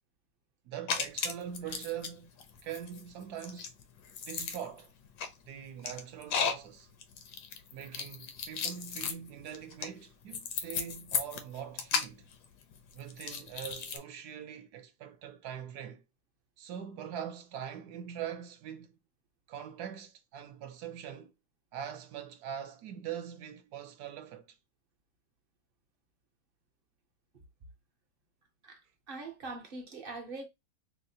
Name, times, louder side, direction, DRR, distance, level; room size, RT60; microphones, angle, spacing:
voice 1, 0.6-2.3 2.6-3.7 4.3-4.9 5.5-6.9 7.7-12.2 12.9-16.0 16.6-18.9 19.5-21.3 21.7-24.5, right 9 dB, 70° right, 1.1 m, -42 dB
sound 1, 0.9-2.1 2.4-14.0, left 6 dB, 80° left, 1.2 m, -35 dB
voice 2, 29.1-30.5, right 3 dB, 50° right, 0.7 m, -42 dB
5.0 x 2.0 x 2.7 m
omnidirectional pair, 1.8 m